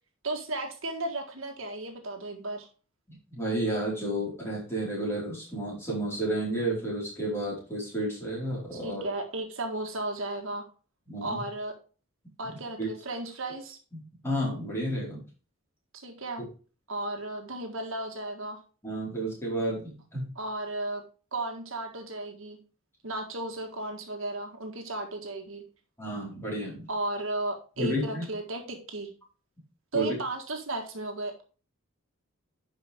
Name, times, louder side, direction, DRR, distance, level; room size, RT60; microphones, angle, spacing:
voice 1, 0.2-2.7 8.7-10.6 11.2-11.7 12.4-13.8 15.9-16.4 16.9-18.6 20.4-21.0 21.3-22.6 23.0-25.6 26.9-29.1 29.9-31.4, right 2 dB, 70° right, 3 dB, 1.7 m, -34 dB
voice 2, 3.3-9.0 11.1-11.4 12.8-12.9 13.9-15.2 18.8-20.3 26.0-26.9 27.8-28.2 29.9-30.2, right 1 dB, 10° left, -6 dB, 4.6 m, -31 dB
11.0 x 5.4 x 3.6 m, 0.36 s
head